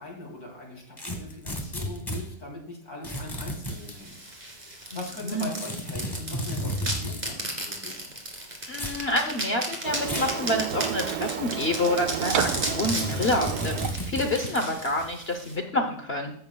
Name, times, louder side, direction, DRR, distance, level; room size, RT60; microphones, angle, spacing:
voice 1, 0.0-4.2 4.4-8.1, left 2 dB, 65° left, -2 dB, 3.9 m, -41 dB
sound 1, 1.0-2.2 3.0-4.0 5.5-7.3 8.7-9.0 10.0-10.4 10.8-10.9 12.3-14.7, equal, 15° left, 1.6 m, -33 dB
sound 2, 3.7-15.6, right 1 dB, 25° right, 2.4 m, -35 dB
voice 2, 4.9-5.5 8.7-16.3, left 1 dB, 45° left, 5 dB, 0.9 m, -28 dB
Printer, 9.8-14.5, right 10 dB, 75° right, 1.2 m, -32 dB
15.0 x 11.5 x 2.3 m, 0.68 s
omnidirectional pair, 1.7 m